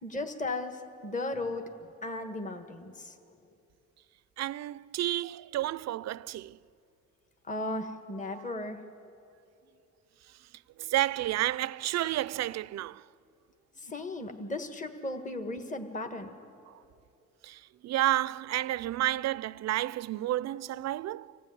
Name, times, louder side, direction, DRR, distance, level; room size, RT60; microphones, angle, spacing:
voice 1, 0.0-3.1 7.5-8.8 13.8-16.3, left 2 dB, 25° left, 1.5 m, -36 dB
voice 2, 4.4-6.6 8.3-8.5 10.8-13.0 16.7-16.8 17.4-21.4, right 14 dB, 60° right, 0.5 m, -31 dB
25.0 x 15.5 x 9.3 m
cardioid pair, 90°, 30 cm